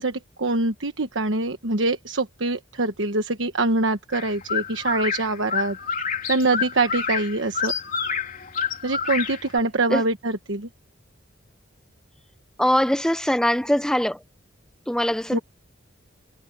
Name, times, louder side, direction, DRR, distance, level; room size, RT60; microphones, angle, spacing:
voice 1, 0.0-5.8 6.3-7.7 8.8-10.7 15.3-15.4, right 2 dB, 70° right, 1.2 m, -24 dB
sound 1, 4.1-9.6, left 6 dB, 40° left, 3.6 m, -28 dB
voice 2, 12.6-14.2 14.9-15.4, equal, 5° left, 0.6 m, -22 dB
head